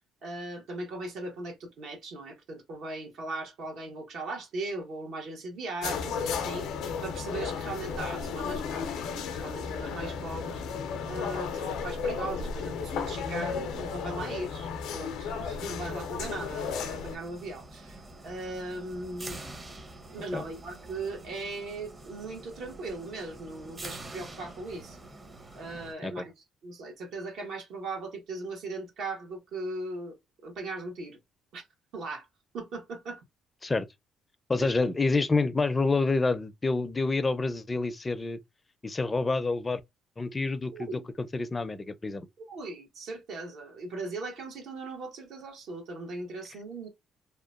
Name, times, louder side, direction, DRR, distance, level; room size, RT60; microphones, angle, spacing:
voice 1, 0.2-6.7 7.0-10.6 11.1-19.4 20.1-25.0 25.5-26.2 26.6-30.1 30.4-31.2 31.5-31.6 31.9-32.2 32.5-33.2 34.6-34.7 40.7-41.1 42.4-46.9, right 2 dB, 75° right, 1.2 m, -38 dB
sound 1, 5.8-17.2, left 6 dB, 80° left, 0.5 m, -34 dB
sound 2, 16.3-25.9, right 2 dB, 30° right, 0.7 m, -46 dB
voice 2, 34.5-38.4 38.8-39.8 40.2-42.3, left 3 dB, 25° left, 0.5 m, -28 dB
2.9 x 2.1 x 2.4 m
cardioid pair, 85°, 0 cm